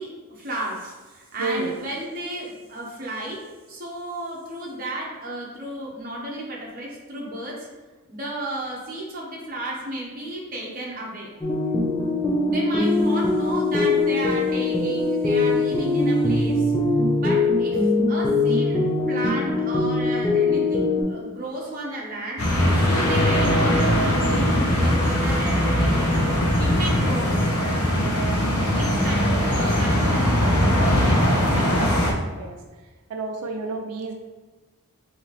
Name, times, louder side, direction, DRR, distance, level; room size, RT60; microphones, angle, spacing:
voice 1, 0.0-3.4 3.7-7.7 8.1-11.3 12.4-16.7 17.1-18.8 19.1-22.4 22.8-26.2 26.6-27.5 28.6-31.7, right 1 dB, 40° right, -3 dB, 0.8 m, -33 dB
voice 2, 1.4-1.7 32.4-32.6 33.1-34.1, right 3 dB, 85° right, 3 dB, 0.4 m, -30 dB
sound 1, 11.4-21.0, left 2 dB, 15° left, 0.5 m, -22 dB
sound 2, 22.4-32.1, equal, 80° left, 0.7 m, -20 dB
4.0 x 2.8 x 3.2 m, 1.3 s
head